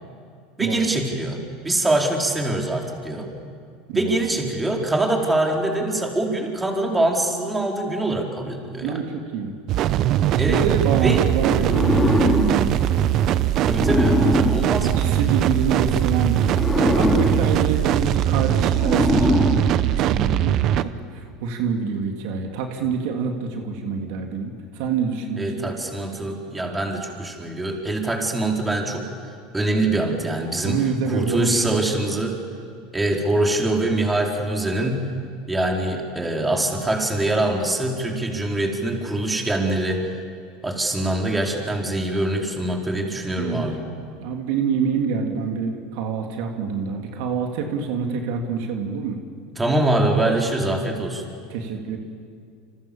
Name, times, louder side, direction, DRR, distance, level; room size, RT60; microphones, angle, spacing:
voice 1, 0.6-1.4 1.6-3.3 3.9-9.0 10.4-10.6 11.0-11.2 13.6-15.0 25.4-29.1 29.5-32.4 32.9-35.1 35.5-40.1 40.6-43.8 49.6-51.3, right 2 dB, 10° right, 1 dB, 4.6 m, -24 dB
voice 2, 8.8-9.5 10.3-12.9 14.8-16.6 16.9-19.4 19.8-25.7 30.6-31.8 43.4-43.7 44.2-49.2 51.5-52.0, right 6 dB, 70° right, 3 dB, 3.1 m, -26 dB
sound 1, 9.7-20.8, right 12 dB, 50° right, 0.9 m, -21 dB
sound 2, 11.6-15.7 16.4-20.4, left 2 dB, 15° left, 2.4 m, -24 dB
28.5 x 27.0 x 7.3 m, 2.3 s
supercardioid pair, 105°, 0 cm